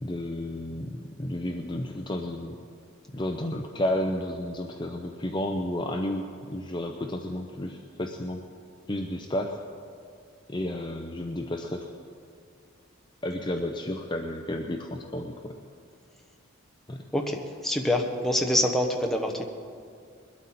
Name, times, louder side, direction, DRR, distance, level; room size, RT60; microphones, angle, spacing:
voice 1, 0.0-2.6 3.1-8.4 8.9-9.5 10.5-11.9 13.2-15.6 16.9-17.0, left 1 dB, 20° left, 3 dB, 0.6 m, -32 dB
voice 2, 17.1-19.4, left 1 dB, ahead, 2 dB, 1.0 m, -26 dB
21.0 x 12.5 x 4.2 m, 2.3 s
head